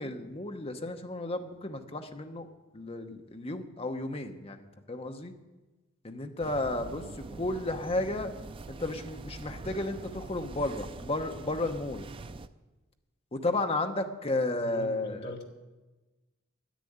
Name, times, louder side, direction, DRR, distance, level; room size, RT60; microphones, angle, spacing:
voice 1, 0.0-2.5 2.7-5.3 6.0-8.3 8.7-12.1 13.3-15.4, left 2 dB, 25° left, 0.9 m, -33 dB
sound 1, 6.4-12.5, right 3 dB, 25° right, 0.3 m, -44 dB
voice 2, 14.6-15.4, left 2 dB, 50° left, 1.7 m, -41 dB
10.0 x 9.1 x 8.6 m
head